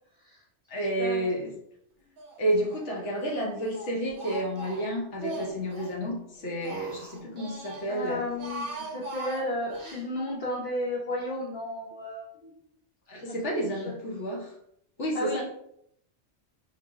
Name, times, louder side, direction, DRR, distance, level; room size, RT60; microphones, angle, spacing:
voice 1, 0.7-1.5 2.4-8.2 13.1-14.5 15.0-15.4, right 1 dB, 75° left, -1 dB, 1.3 m, -30 dB
Speech, 2.2-2.9 3.2-6.0 6.4-7.9 8.2-10.0, right 2 dB, 55° right, 0.7 m, -41 dB
voice 2, 7.9-12.6 13.3-13.5 13.8-14.0 15.1-15.4, left 1 dB, 50° left, -5 dB, 1.0 m, -33 dB
4.7 x 2.1 x 3.6 m, 0.73 s
omnidirectional pair, 1.2 m